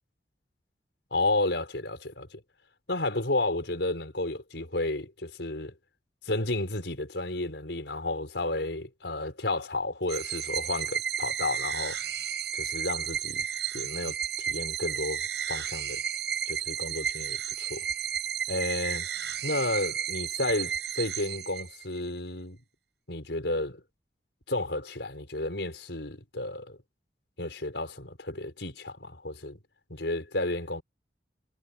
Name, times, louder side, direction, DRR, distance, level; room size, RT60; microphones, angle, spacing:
voice 1, 1.1-2.4 2.9-5.7 6.2-12.0 12.5-13.4 13.7-16.0 16.5-17.8 18.5-19.1 19.4-22.6 23.1-23.8 24.5-26.8 27.4-29.6 29.9-30.8, left 2 dB, 85° left, 4.7 m, -32 dB
sound 1, 10.1-22.0, right 9 dB, 75° right, 6.5 m, -33 dB
head